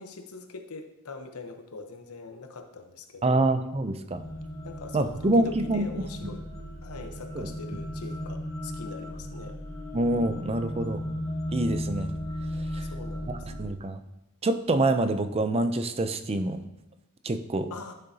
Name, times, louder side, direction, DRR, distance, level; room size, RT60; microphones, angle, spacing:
voice 1, 0.0-3.5 4.6-6.4 6.8-9.6 12.8-13.5 17.7-17.9, left 3 dB, 85° left, 6 dB, 0.9 m, -43 dB
voice 2, 3.2-4.2 4.9-5.9 6.2-6.3 7.4-7.5 9.9-11.0 11.5-12.1 12.7-12.8 13.3-14.0 14.4-16.6 17.2-17.7, right 2 dB, 25° right, 10 dB, 0.5 m, -26 dB
sound 1, 4.1-13.6, equal, 15° left, 1.4 m, -36 dB
12.0 x 6.7 x 2.8 m, 0.95 s
head